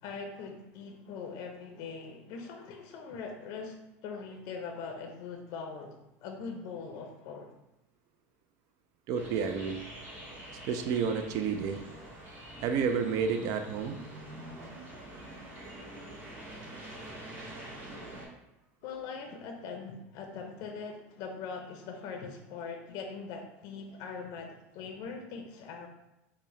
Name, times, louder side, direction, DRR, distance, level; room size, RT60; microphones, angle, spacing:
voice 1, 0.0-7.5 18.8-25.9, left 5 dB, 55° left, 4 dB, 0.5 m, -41 dB
sound 1, 9.1-18.3, right 1 dB, 30° right, 1.4 m, -45 dB
voice 2, 9.1-9.8 10.6-11.8 12.6-14.0, right 6 dB, 55° right, 7 dB, 0.3 m, -30 dB
4.4 x 2.0 x 3.1 m, 0.91 s
supercardioid pair, 110°, 7 cm